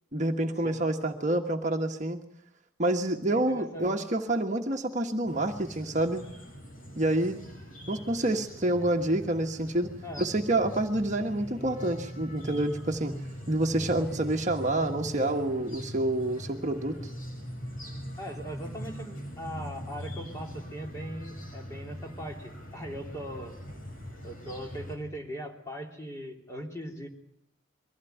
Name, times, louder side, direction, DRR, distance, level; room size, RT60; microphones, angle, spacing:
voice 1, 0.1-2.2 2.8-6.2 7.0-7.4 7.9-13.1 13.5-17.0, right 1 dB, 35° right, 3 dB, 1.4 m, -28 dB
voice 2, 3.3-3.9 10.0-10.2 18.2-23.6 24.2-27.1, equal, 15° left, 1 dB, 3.3 m, -40 dB
sound 1, 5.2-25.0, equal, 80° left, 7.0 m, -42 dB
23.5 x 16.0 x 9.3 m, 0.76 s
head